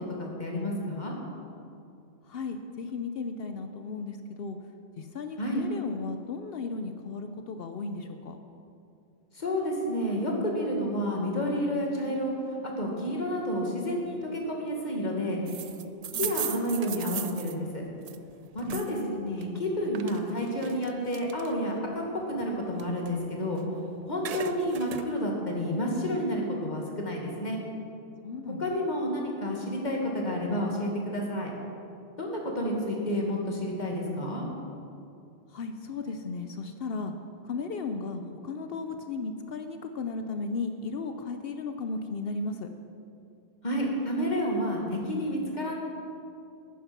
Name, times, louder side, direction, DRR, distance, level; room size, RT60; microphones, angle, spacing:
voice 1, 0.2-1.1 5.4-5.6 9.3-12.3 12.6-15.6 16.1-17.8 18.5-23.6 24.1-27.6 28.6-31.5 32.2-34.4 43.6-45.8, equal, 45° left, -1 dB, 1.9 m, -30 dB
voice 2, 2.3-4.6 5.0-8.4 12.0-12.2 16.1-16.3 18.7-19.2 28.2-28.7 35.5-37.1 37.4-42.7, left 4 dB, 65° left, 7 dB, 0.8 m, -35 dB
sound 1, 15.5-19.0 19.4-21.8 22.2-23.7 24.0-25.1, right 8 dB, 55° right, 0.4 m, -38 dB
10.0 x 9.4 x 5.9 m, 2.5 s
omnidirectional pair, 1.1 m